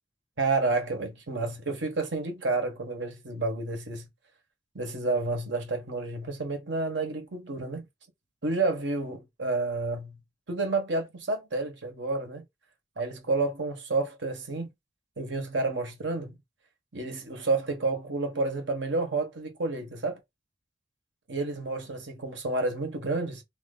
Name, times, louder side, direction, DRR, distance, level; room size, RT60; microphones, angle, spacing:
voice 1, 0.4-4.1 4.7-7.8 8.4-10.2 10.5-12.4 13.0-14.7 15.2-16.4 16.9-20.2 21.3-23.4, right 3 dB, 85° right, 1.2 m, -30 dB
2.8 x 2.7 x 3.8 m
head